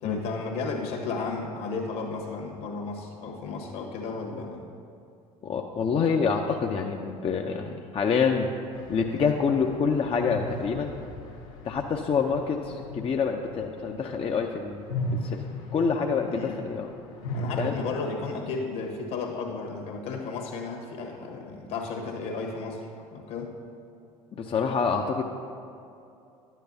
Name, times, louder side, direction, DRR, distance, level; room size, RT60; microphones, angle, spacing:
voice 1, 0.0-4.7 16.3-16.6 17.3-23.6, left 4 dB, 65° left, 1 dB, 1.5 m, -33 dB
voice 2, 5.4-8.5 8.9-10.9 11.6-14.9 15.2-15.4 15.7-16.9 17.6-17.7 24.3-25.2, left 5 dB, 30° left, 2 dB, 0.6 m, -26 dB
sound 1, 8.7-14.4 14.7-17.7, left 1 dB, 80° left, 1.3 m, -37 dB
11.5 x 9.0 x 2.7 m, 2.6 s
hypercardioid pair, 65°, 18 cm